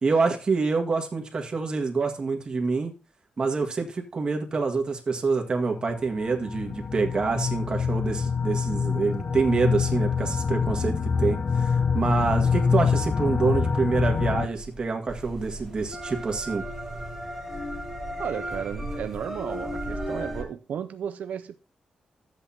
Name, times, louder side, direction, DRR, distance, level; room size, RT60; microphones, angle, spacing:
voice 1, 0.0-2.9 3.4-16.6, right 4 dB, 35° right, 1.8 m, -26 dB
sound 1, 5.6-14.5, left 6 dB, 40° left, 0.8 m, -25 dB
sound 2, 14.6-20.4, equal, 5° right, 4.2 m, -35 dB
voice 2, 18.2-21.6, right 8 dB, 90° right, 0.5 m, -34 dB
12.5 x 8.1 x 2.8 m
wide cardioid pair, 145°, 2 cm